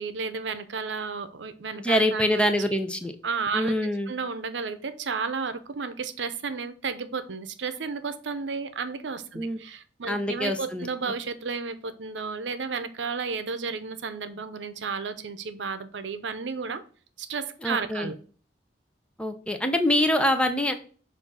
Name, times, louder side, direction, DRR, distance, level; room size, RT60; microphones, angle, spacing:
voice 1, 0.0-2.6 3.2-16.8 17.2-18.2, right 5 dB, 85° right, 0.7 m, -32 dB
voice 2, 1.8-3.1 3.5-4.1 9.3-9.6 10.1-10.9 17.6-18.1 19.2-20.7, left 1 dB, 5° left, 0.6 m, -25 dB
6.6 x 2.7 x 5.6 m
head